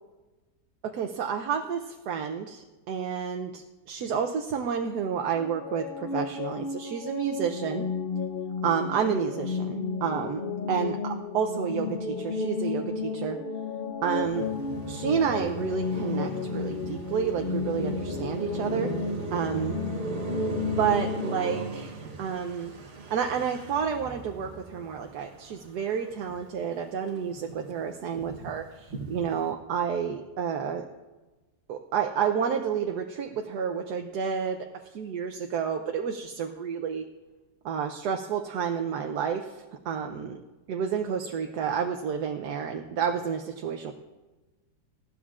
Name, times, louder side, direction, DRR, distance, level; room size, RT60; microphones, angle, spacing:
voice 1, 0.8-7.9 8.6-10.4 10.7-11.0 11.3-13.4 14.0-14.5 14.9-18.9 19.3-19.7 20.6-22.7 23.1-30.9 31.7-37.0 37.6-40.4 40.7-43.9, right 7 dB, 80° right, 5 dB, 1.3 m, -30 dB
sound 1, 5.3-21.6, left 4 dB, 75° left, 0.4 m, -33 dB
Car passing by, 14.2-26.7 27.0-29.5, right 3 dB, 50° right, 1.4 m, -38 dB
19.5 x 15.5 x 2.4 m, 1.2 s
omnidirectional pair, 1.7 m